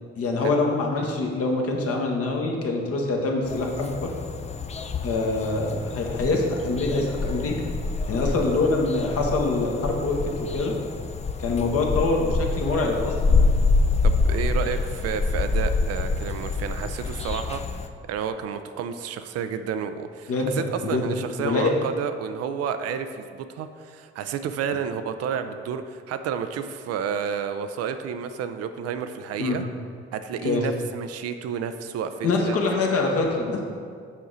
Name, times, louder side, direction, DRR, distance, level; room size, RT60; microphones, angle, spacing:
voice 1, 0.2-4.1 5.0-7.6 8.1-10.7 11.4-13.5 20.3-21.7 29.4-29.6 30.4-30.7 32.2-33.6, left 3 dB, 50° left, 1 dB, 1.1 m, -25 dB
sound 1, 3.5-17.9, left 3 dB, 25° left, 0.4 m, -26 dB
voice 2, 14.0-17.6 18.1-29.6 30.1-32.6, right 7 dB, 55° right, 9 dB, 0.5 m, -31 dB
7.2 x 4.8 x 3.9 m, 2.1 s
figure-of-eight pair, 40°, 29 cm